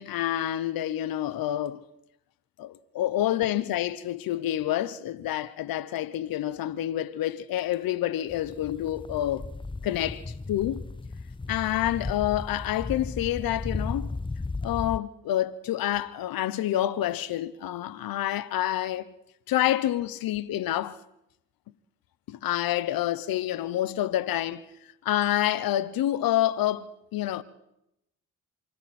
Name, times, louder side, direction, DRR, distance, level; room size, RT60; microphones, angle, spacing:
voice 1, 0.0-1.8 2.6-9.5 9.8-10.8 11.5-14.1 14.6-19.1 19.5-21.0 22.3-24.6 25.0-27.4, left 13 dB, 85° left, 1.0 m, -28 dB
sound 1, 8.3-15.0, left 3 dB, 15° left, 0.7 m, -35 dB
27.0 x 25.5 x 4.4 m
supercardioid pair, 50°, 34 cm